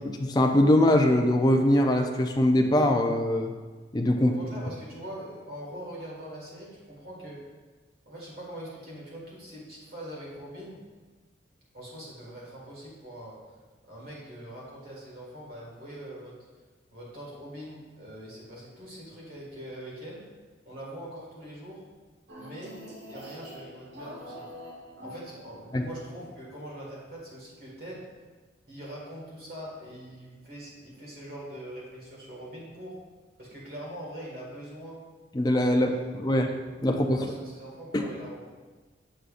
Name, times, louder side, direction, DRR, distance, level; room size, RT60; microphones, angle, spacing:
voice 1, 0.2-3.5 3.9-4.3 25.7-25.8 35.3-35.9 36.2-36.5 36.8-37.2 37.9-38.0, left 1 dB, 20° left, 3 dB, 0.4 m, -22 dB
voice 2, 4.2-7.4 8.1-10.8 11.7-13.4 13.9-16.4 16.9-20.2 20.7-21.8 22.4-22.7 23.0-24.5 25.0-28.1 28.7-33.0 33.4-35.0 35.7-36.5 36.9-38.5, right 1 dB, 50° right, -5 dB, 1.9 m, -42 dB
sound 1, 22.3-25.8, equal, 70° right, 1.3 m, -44 dB
6.8 x 6.2 x 2.5 m, 1.3 s
head